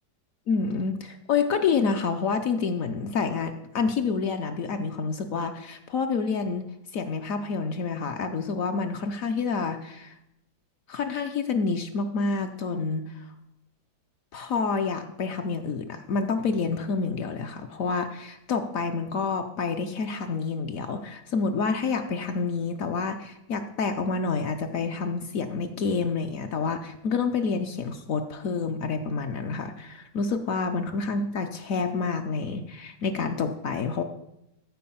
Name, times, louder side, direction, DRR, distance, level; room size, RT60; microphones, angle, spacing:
voice 1, 0.5-6.7 6.9-10.1 10.9-13.2 14.3-34.0, left 4 dB, 65° left, 6 dB, 0.9 m, -28 dB
13.5 x 4.6 x 5.6 m, 0.86 s
omnidirectional pair, 1.8 m